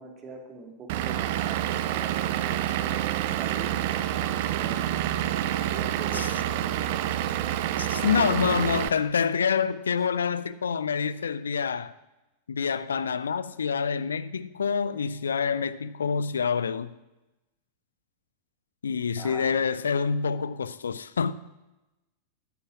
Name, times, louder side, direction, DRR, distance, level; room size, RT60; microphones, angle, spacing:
voice 1, 0.0-2.2 2.4-5.0 5.6-7.3 7.7-8.8 19.2-19.6, right 4 dB, 25° right, 3.0 m, -42 dB
Vehicle / Engine, 0.9-8.9, right 12 dB, 50° right, 0.7 m, -28 dB
voice 2, 7.8-11.9 12.5-16.9 18.8-21.3, left 6 dB, 70° left, 0.6 m, -27 dB
13.0 x 9.9 x 7.4 m
figure-of-eight pair, 90°, 0 cm